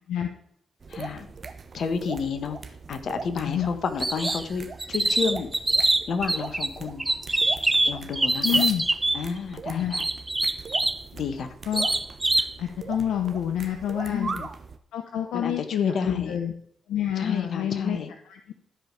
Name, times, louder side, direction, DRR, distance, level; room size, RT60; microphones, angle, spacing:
sound 1, 0.8-14.8, right 4 dB, 50° right, 1.1 m, -40 dB
voice 1, 0.9-1.3 1.7-2.6 2.9-5.5 6.1-7.0 7.9-8.7 9.1-10.1 11.1-11.6 14.1-14.5 15.3-16.4 17.2-18.1, left 5 dB, 65° left, 9 dB, 1.3 m, -30 dB
sound 2, 4.0-4.4 4.8-6.7 7.0-9.2 9.9-11.0 11.7-12.5, right 2 dB, 20° right, 0.8 m, -24 dB
voice 2, 8.4-8.8 9.7-9.9 11.7-11.9 12.6-14.3 14.9-16.5 16.9-18.0 18.3-18.4, left 10 dB, 80° left, 6 dB, 0.8 m, -28 dB
12.5 x 5.1 x 6.8 m, 0.66 s
hypercardioid pair, 45°, 0 cm